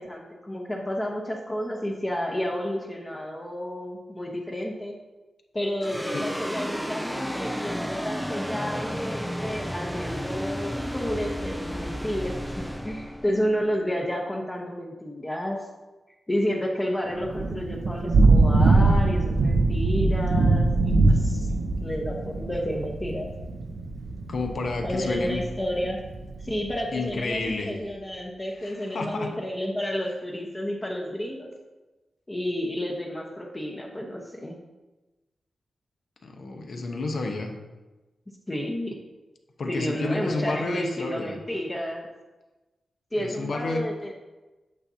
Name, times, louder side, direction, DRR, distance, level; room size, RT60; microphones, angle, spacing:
voice 1, 0.0-5.0 5.5-15.7 16.3-21.5 21.8-23.3 24.8-26.0 26.4-31.5 32.3-34.6 38.5-39.0 39.7-42.1 43.1-44.1, equal, 20° left, -2 dB, 0.9 m, -31 dB
sound 1, 5.8-14.3, equal, ahead, 0.4 m, -32 dB
Thunder / Rain, 17.2-26.7, right 3 dB, 70° right, 0.6 m, -22 dB
voice 2, 24.3-25.4 26.9-27.8 28.5-29.3 36.2-37.5 39.6-41.4 43.2-43.9, left 3 dB, 65° left, 3 dB, 1.0 m, -30 dB
8.7 x 6.8 x 2.8 m, 1.1 s
cardioid pair, 85°, 0 cm